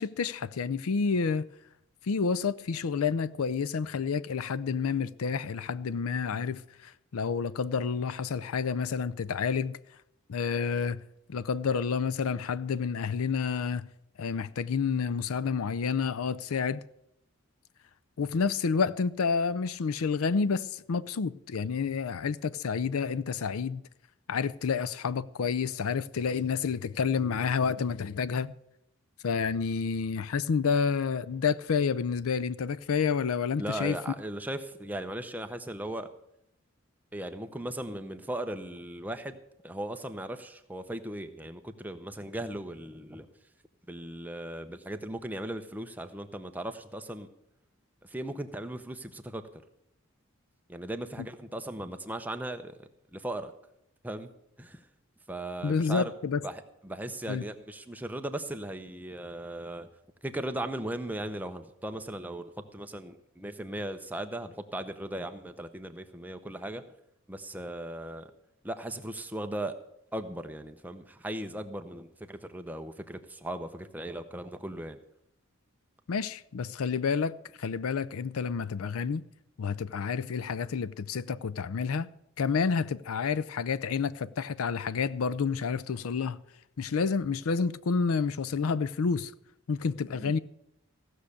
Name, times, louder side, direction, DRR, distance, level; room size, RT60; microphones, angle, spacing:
voice 1, 0.0-1.5 2.0-9.8 10.3-11.0 11.3-13.9 14.2-16.8 18.2-23.8 24.3-28.5 29.2-33.9 55.6-56.4 57.3-57.4 76.1-79.2 79.6-82.1 82.4-86.4 86.8-89.3 89.7-90.4, left 5 dB, 75° left, 0.5 m, -29 dB
voice 2, 33.6-36.1 37.1-39.4 39.6-43.3 43.9-47.3 48.0-49.5 50.7-53.5 54.0-54.3 54.6-54.8 55.3-56.1 56.4-59.9 60.2-66.8 67.3-68.3 68.6-69.8 70.1-75.0 90.2-90.3, right 1 dB, 10° right, 0.7 m, -37 dB
16.0 x 6.5 x 8.4 m
head